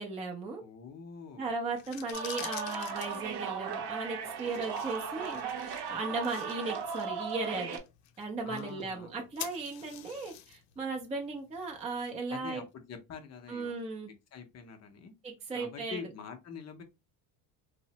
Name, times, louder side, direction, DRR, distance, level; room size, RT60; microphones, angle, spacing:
voice 1, 0.0-0.6 1.4-7.8 8.2-12.6 13.5-14.1 15.2-16.0, right 3 dB, 15° right, 0.4 m, -37 dB
voice 2, 0.6-1.5 8.4-9.2 12.3-13.8 14.3-15.1 15.5-16.8, left 6 dB, 35° left, 0.5 m, -45 dB
sound 1, 1.7-12.5, left 12 dB, 80° left, 0.5 m, -49 dB
sound 2, 2.1-7.8, right 6 dB, 60° right, 0.7 m, -37 dB
3.1 x 2.1 x 2.7 m
cardioid pair, 140°, 47 cm